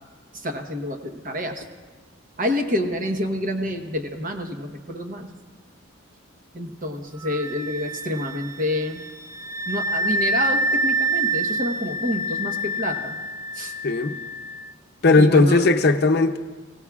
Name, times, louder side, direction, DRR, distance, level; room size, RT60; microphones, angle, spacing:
voice 1, 0.3-1.7 2.4-5.3 6.5-9.0 9.7-13.2 13.5-13.7 15.2-15.7, left 1 dB, 40° right, 4 dB, 1.1 m, -28 dB
Wind instrument woodwind instrument, 7.2-14.6, right 1 dB, 15° right, 0.3 m, -27 dB
voice 2, 13.8-14.2 15.0-16.4, left 3 dB, 50° left, 6 dB, 0.7 m, -17 dB
23.5 x 17.0 x 2.4 m, 1.4 s
head